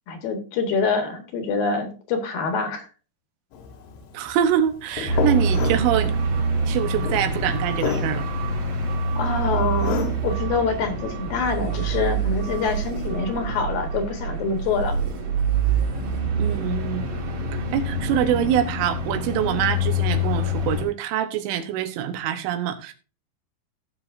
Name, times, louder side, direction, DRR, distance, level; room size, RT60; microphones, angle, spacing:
voice 1, 0.1-2.9 5.1-5.2 9.2-14.9, left 4 dB, 60° left, 2.8 m, -26 dB
sound 1, 3.5-10.4, left 7 dB, 80° left, 4.2 m, -31 dB
voice 2, 4.1-6.1 6.7-8.3 16.3-17.1 17.5-22.9, right 10 dB, 85° right, 3.6 m, -25 dB
sound 2, 5.0-20.8, right 2 dB, 50° right, 3.8 m, -26 dB
17.0 x 7.1 x 2.6 m
omnidirectional pair, 5.5 m